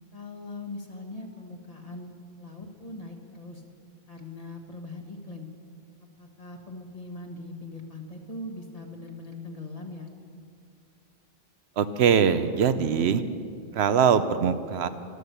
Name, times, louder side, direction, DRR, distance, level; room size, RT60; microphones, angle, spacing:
voice 1, 0.1-3.6 4.1-5.5 6.2-10.1, left 2 dB, 35° left, 4 dB, 1.4 m, -41 dB
voice 2, 11.8-13.2 13.7-14.9, right 7 dB, 80° right, 12 dB, 0.9 m, -22 dB
13.0 x 13.0 x 6.8 m, 2.2 s
omnidirectional pair, 1.1 m